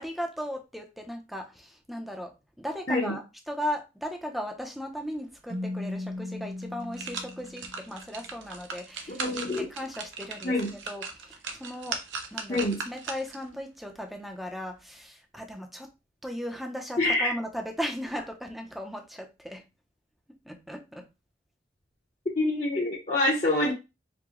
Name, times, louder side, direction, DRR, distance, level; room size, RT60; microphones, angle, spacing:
voice 1, 0.0-10.6 10.9-12.0 12.3-12.6 12.9-15.9 16.2-19.6 20.4-21.1, equal, ahead, 3 dB, 0.7 m, -37 dB
Keyboard (musical), 5.5-8.2, left 2 dB, 35° right, 0.4 m, -37 dB
sound 1, 6.1-6.2 6.6-13.5 13.9-14.0, right 4 dB, 75° right, 0.8 m, -39 dB
voice 2, 9.1-9.7 10.4-10.7 12.5-12.8 17.0-17.3 22.4-23.7, left 2 dB, 40° left, -6 dB, 1.0 m, -26 dB
4.7 x 2.3 x 3.8 m, 0.25 s
head